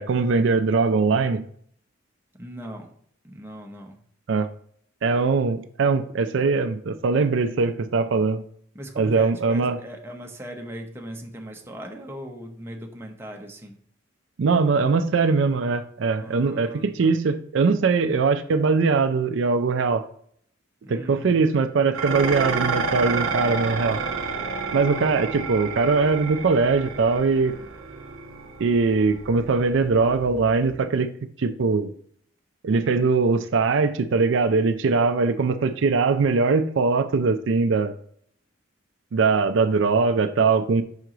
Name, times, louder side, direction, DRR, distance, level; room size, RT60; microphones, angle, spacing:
voice 1, 0.0-1.5 4.3-4.5 5.0-8.4 9.0-9.8 14.4-20.0 20.9-24.0 24.7-27.6 28.6-31.1 31.4-31.9 32.6-37.9 39.1-40.8, right 4 dB, 65° right, 9 dB, 0.4 m, -21 dB
voice 2, 2.4-2.9 3.2-4.0 8.7-13.8 16.2-17.1 20.8-21.4 24.8-25.2, equal, 10° right, 1 dB, 0.8 m, -39 dB
Dishes pots and pans, 21.9-30.8, right 4 dB, 90° right, 0.8 m, -30 dB
5.7 x 4.6 x 3.8 m, 0.62 s
head